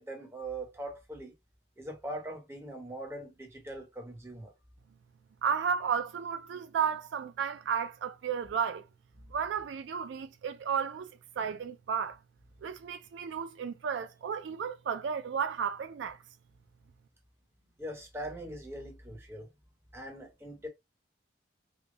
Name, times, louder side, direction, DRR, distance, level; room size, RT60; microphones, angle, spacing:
voice 1, 0.0-1.3 1.8-4.5 17.8-19.5 19.9-20.7, right 1 dB, 15° right, 1.1 m, -41 dB
voice 2, 5.4-8.9 9.3-11.1 11.4-12.2 12.6-16.2, right 7 dB, 75° right, 0.3 m, -33 dB
3.5 x 2.2 x 3.8 m
head